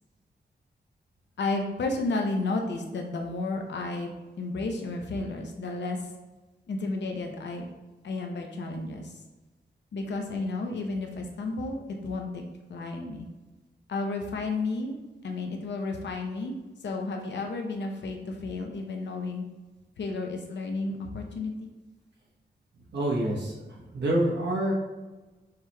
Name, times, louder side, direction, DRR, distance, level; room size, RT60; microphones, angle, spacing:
voice 1, 1.4-6.1 6.7-7.7 8.0-9.1 9.9-12.4 12.7-13.3 13.9-15.0 15.2-16.5 16.8-19.4 20.0-21.7, left 3 dB, 80° left, 3 dB, 0.7 m, -32 dB
voice 2, 22.9-24.7, right 1 dB, 75° right, -3 dB, 1.0 m, -27 dB
6.6 x 3.0 x 2.2 m, 1.2 s
wide cardioid pair, 115°, 18 cm